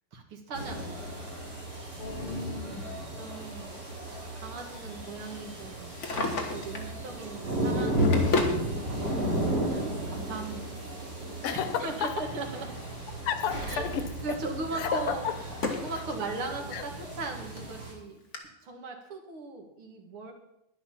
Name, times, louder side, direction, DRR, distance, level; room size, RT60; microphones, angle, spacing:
voice 1, 0.1-1.3 3.1-3.7 4.4-8.6 9.6-10.8 11.5-12.7 13.7-13.9 14.2-15.3 15.7-18.2 18.6-20.3, right 3 dB, 75° right, 2 dB, 2.7 m, -39 dB
sound 1, 0.5-17.9, equal, 30° right, 3.8 m, -34 dB
voice 2, 2.0-2.9 11.4-12.3 13.2-14.1 14.7-15.4 16.7-16.8, left 8 dB, 90° left, 10 dB, 1.9 m, -32 dB
Drawer open or close, 5.8-6.9 7.7-8.6 9.7-9.8 11.6-13.1 13.4-13.8 14.3-16.0 16.4-16.5 17.2-17.3 17.6-17.7 18.3-18.4, left 3 dB, 35° left, 1.6 m, -33 dB
11.0 x 10.5 x 5.7 m, 0.85 s
omnidirectional pair, 2.4 m